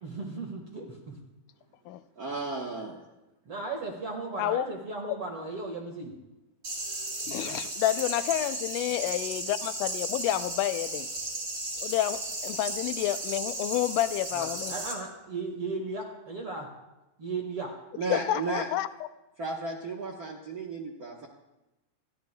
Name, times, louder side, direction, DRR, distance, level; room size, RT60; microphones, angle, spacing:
voice 1, 0.0-1.2 3.5-6.1 14.3-16.7 17.2-17.7, right 3 dB, 50° right, 1 dB, 2.3 m, -36 dB
voice 2, 2.2-3.0 17.9-18.7 19.4-21.3, right 3 dB, 75° right, -1 dB, 0.8 m, -34 dB
sound 1, 6.6-14.9, right 2 dB, 25° right, 3.4 m, -35 dB
voice 3, 7.3-11.1 11.8-14.7 18.1-18.9, left 13 dB, 90° left, 12 dB, 2.2 m, -29 dB
27.5 x 14.5 x 2.2 m, 0.99 s
omnidirectional pair, 3.6 m